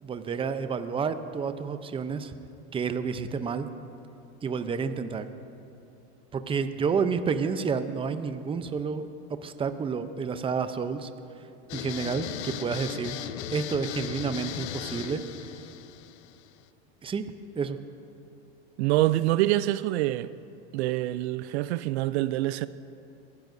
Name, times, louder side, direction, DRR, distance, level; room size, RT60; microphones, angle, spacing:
voice 1, 0.0-2.3 2.7-3.7 4.4-5.3 6.3-9.1 9.4-11.1 11.7-13.1 13.5-15.2 17.0-17.8, right 5 dB, 15° right, 0.6 m, -30 dB
sound 1, 11.7-16.7, left 11 dB, 75° left, 0.7 m, -37 dB
voice 2, 18.8-20.3 20.7-22.7, right 15 dB, 70° right, 0.5 m, -25 dB
22.5 x 15.5 x 2.7 m
supercardioid pair, 110°, 34 cm